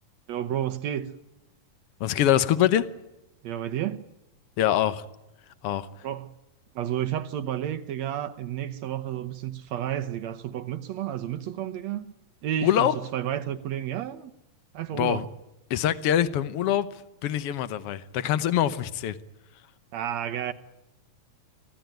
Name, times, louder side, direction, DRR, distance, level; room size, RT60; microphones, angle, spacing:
voice 1, 0.3-1.1 3.4-4.1 6.0-6.3 6.8-12.1 12.4-14.3 14.7-15.3 19.9-20.5, right 11 dB, 65° right, 1.8 m, -31 dB
voice 2, 2.0-2.8 4.6-5.0 5.6-5.9 12.6-13.0 14.9-15.2 15.7-16.9 17.2-19.2, left 11 dB, 80° left, 1.3 m, -24 dB
25.0 x 16.0 x 9.2 m
omnidirectional pair, 4.0 m